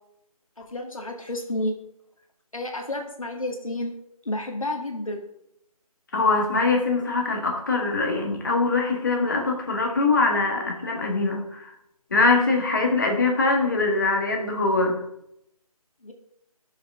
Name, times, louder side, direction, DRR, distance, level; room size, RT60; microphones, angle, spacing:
voice 1, 0.7-1.8 2.5-3.9 4.3-5.2 16.0-16.1, left 1 dB, 60° left, 4 dB, 1.9 m, -30 dB
voice 2, 6.1-11.7 12.1-15.0, left 3 dB, 30° left, 2 dB, 1.6 m, -23 dB
12.0 x 6.8 x 3.6 m, 0.78 s
figure-of-eight pair, 160°, 19 cm